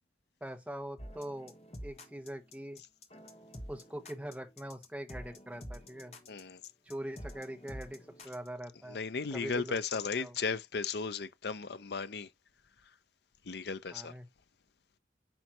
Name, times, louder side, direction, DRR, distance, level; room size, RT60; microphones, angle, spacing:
voice 1, 0.4-2.8 3.7-6.1 6.8-9.0 9.3-9.8 10.2-10.3 13.9-14.3, right 1 dB, 5° right, 1.2 m, -43 dB
sound 1, 1.0-8.5, equal, 35° left, 1.4 m, -48 dB
voice 2, 6.3-6.6 8.9-12.3 13.4-14.1, left 5 dB, 65° left, 0.6 m, -35 dB
8.9 x 5.4 x 3.0 m
head